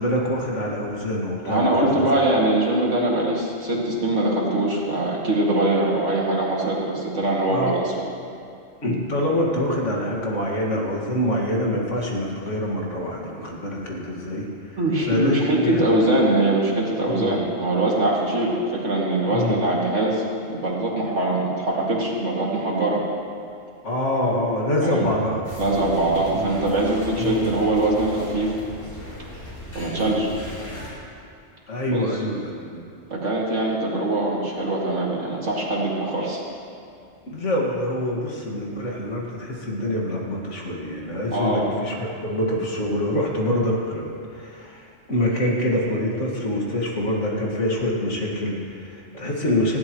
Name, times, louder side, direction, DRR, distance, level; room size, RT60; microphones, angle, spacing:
voice 1, 0.0-2.0 7.5-7.8 8.8-14.8 15.1-16.1 17.0-17.3 19.3-19.6 23.8-25.4 26.3-26.6 27.2-27.6 30.0-30.2 31.7-32.8 37.2-49.8, left 1 dB, 65° left, -2 dB, 2.4 m, -25 dB
voice 2, 1.4-7.9 14.8-23.0 24.8-25.1 25.6-28.6 29.7-30.3 31.9-32.0 33.1-36.4 41.3-41.7, right 2 dB, 65° right, -4 dB, 2.8 m, -22 dB
sound 1, 25.4-30.9, left 1 dB, 15° left, 3.9 m, -38 dB
19.0 x 15.5 x 3.2 m, 2.4 s
omnidirectional pair, 1.3 m